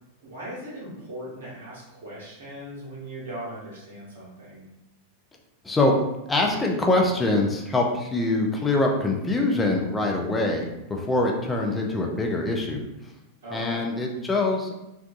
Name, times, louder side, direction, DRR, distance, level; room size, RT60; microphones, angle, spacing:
voice 1, 0.2-4.6 13.4-13.9, right 1 dB, 60° right, -5 dB, 0.9 m, -39 dB
voice 2, 6.3-12.8 13.5-14.8, left 2 dB, 10° left, 1 dB, 0.5 m, -24 dB
3.8 x 2.3 x 2.5 m, 0.94 s
figure-of-eight pair, 90°, 0 cm